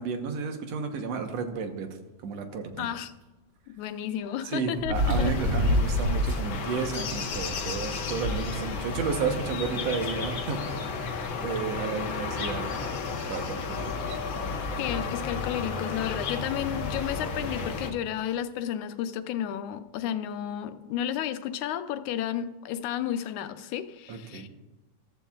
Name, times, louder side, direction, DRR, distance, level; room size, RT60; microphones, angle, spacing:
voice 1, 0.0-1.9 2.2-2.9 4.4-11.0 11.4-14.2 24.1-24.5, right 5 dB, 65° right, 5 dB, 2.1 m, -32 dB
voice 2, 2.8-3.1 3.7-5.3 14.8-24.5, left 10 dB, 85° left, 9 dB, 2.1 m, -32 dB
sound 1, 2.8-2.9 4.8-6.5 6.9-7.0 7.5-7.6 7.9-9.0 10.0-10.1 11.6-11.7 12.2-12.3 13.0-13.3 14.6-14.7 14.9-15.0 16.7-17.0 17.7-17.8, left 1 dB, 30° right, 4.4 m, -27 dB
sound 2, 4.9-17.9, left 4 dB, 60° left, 1.3 m, -33 dB
14.5 x 13.5 x 2.3 m, 1.1 s
omnidirectional pair, 3.3 m